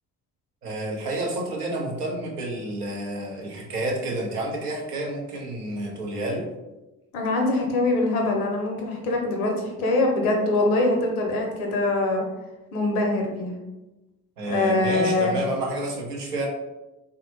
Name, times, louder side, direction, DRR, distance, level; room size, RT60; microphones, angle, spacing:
voice 1, 0.6-6.5 14.4-16.5, right 1 dB, 85° right, 0 dB, 0.6 m, -29 dB
voice 2, 7.1-12.3 12.7-13.5 14.5-15.4, left 2 dB, 80° left, 2 dB, 0.6 m, -23 dB
3.3 x 2.0 x 2.7 m, 1.0 s
figure-of-eight pair, 45°, 45 cm